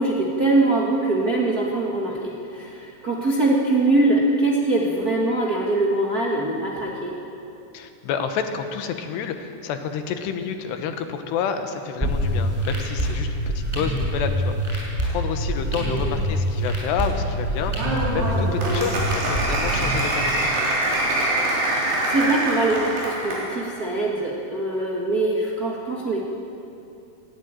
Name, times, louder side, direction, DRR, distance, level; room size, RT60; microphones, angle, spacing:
voice 1, 0.0-7.1 15.9-16.2 18.6-18.9 22.1-26.2, right 2 dB, 60° right, -2 dB, 0.9 m, -23 dB
voice 2, 7.7-21.0, left 7 dB, 90° left, 7 dB, 3.4 m, -30 dB
sound 1, 12.0-20.0, equal, 5° right, 6.0 m, -25 dB
Applause, 17.7-23.5, right 1 dB, 75° right, 5.5 m, -24 dB
19.0 x 15.5 x 9.0 m, 2.8 s
omnidirectional pair, 4.7 m